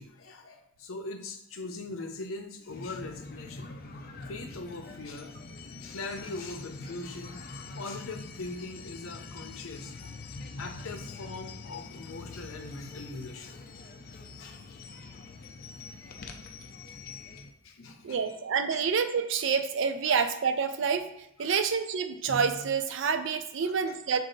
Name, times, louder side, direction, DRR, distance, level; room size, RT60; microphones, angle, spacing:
voice 1, 0.0-3.7 4.3-5.3 5.8-7.4 7.8-10.2 10.6-13.6 14.1-14.6 17.6-18.4 18.7-18.8 20.1-20.2 21.4-21.6 23.6-23.9, left 3 dB, 90° left, 5 dB, 0.7 m, -41 dB
sound 1, 2.7-17.5, left 3 dB, 45° left, 0.4 m, -44 dB
voice 2, 18.0-21.0 21.4-24.2, right 6 dB, 65° right, 8 dB, 0.4 m, -28 dB
5.2 x 2.6 x 3.8 m, 0.82 s
head